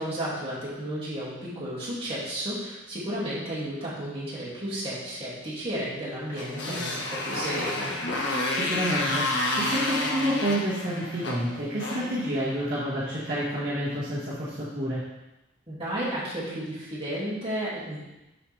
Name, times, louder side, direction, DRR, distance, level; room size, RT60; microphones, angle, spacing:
voice 1, 0.0-8.0 15.7-18.1, right 1 dB, 25° right, -9 dB, 2.6 m, -33 dB
Motorcycle, 6.3-12.8, left 2 dB, 60° left, 1.2 m, -30 dB
voice 2, 8.5-15.0, equal, 45° right, -10 dB, 1.8 m, -29 dB
7.1 x 7.0 x 3.4 m, 0.99 s
head